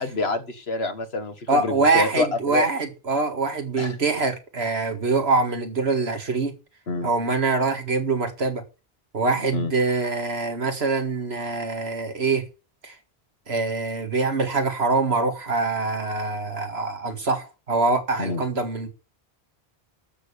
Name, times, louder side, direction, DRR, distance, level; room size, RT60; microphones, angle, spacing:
voice 1, 0.0-2.7 3.8-3.9 6.9-7.1 9.5-9.7 18.2-18.4, left 3 dB, 75° left, 1.8 m, -27 dB
voice 2, 1.5-6.6 7.0-8.6 9.1-12.4 12.8-13.0 13.5-18.9, right 3 dB, 85° right, 2.3 m, -24 dB
12.5 x 6.7 x 7.0 m
omnidirectional pair, 1.1 m